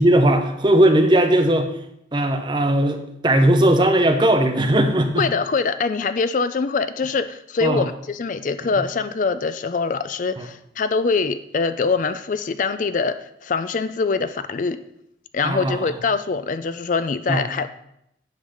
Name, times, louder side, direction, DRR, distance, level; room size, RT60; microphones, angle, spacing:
voice 1, 0.0-1.7 2.1-5.3 7.6-7.9 10.4-10.5 15.4-15.9 17.3-17.4, right 1 dB, 25° right, 5 dB, 0.8 m, -18 dB
voice 2, 5.2-13.1 13.4-14.8 15.3-17.7, left 4 dB, 45° left, 11 dB, 0.4 m, -23 dB
9.3 x 4.0 x 6.4 m, 0.77 s
head